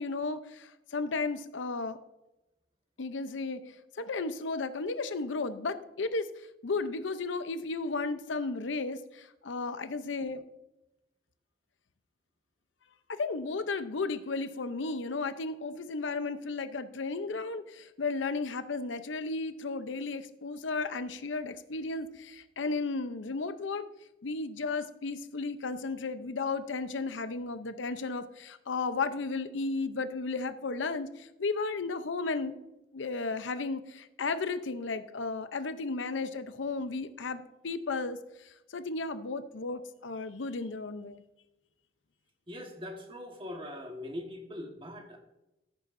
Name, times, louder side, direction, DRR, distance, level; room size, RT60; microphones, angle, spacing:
voice 1, 0.0-2.0 3.0-6.3 6.6-10.4 13.1-23.9 24.2-32.5 32.9-41.2, left 3 dB, 85° left, 11 dB, 0.7 m, -34 dB
voice 2, 42.5-45.2, left 1 dB, 30° right, 2 dB, 1.4 m, -41 dB
14.5 x 8.2 x 2.6 m, 0.94 s
head